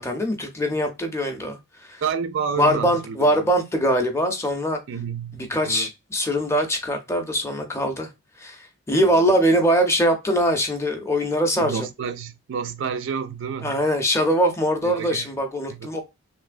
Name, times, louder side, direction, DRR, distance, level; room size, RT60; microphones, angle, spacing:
voice 1, 0.0-2.0 2.6-4.8 5.3-8.1 8.4-11.9 13.6-16.0, equal, 10° left, 0.5 m, -22 dB
voice 2, 2.0-3.3 4.9-5.9 9.0-9.2 11.6-13.8 14.8-15.3 15.7-15.9, right 6 dB, 60° right, 0.3 m, -30 dB
3.1 x 2.8 x 2.5 m
head